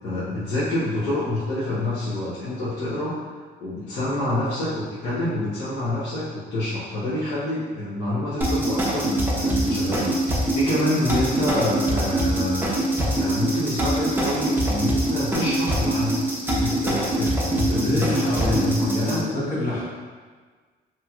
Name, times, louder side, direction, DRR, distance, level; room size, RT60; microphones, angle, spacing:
voice 1, 0.0-10.1 10.5-12.6 13.2-16.2 16.5-19.2, left 1 dB, 70° left, -13 dB, 1.0 m, -27 dB
sound 1, 8.4-19.2, right 1 dB, 10° right, 0.6 m, -24 dB
voice 2, 9.6-10.0 17.8-19.8, left 1 dB, 45° left, -7 dB, 1.1 m, -27 dB
2.9 x 2.9 x 2.4 m, 1.5 s
cardioid pair, 110°, 18 cm